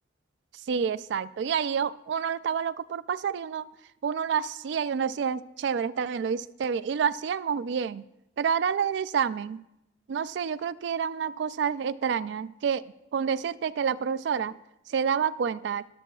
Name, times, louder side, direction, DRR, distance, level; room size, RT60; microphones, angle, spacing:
voice 1, 0.7-3.6 4.0-8.0 8.4-9.6 10.1-12.8 13.1-14.5 14.9-15.8, right 7 dB, 65° right, 17 dB, 0.3 m, -28 dB
13.5 x 11.0 x 2.3 m, 0.87 s
head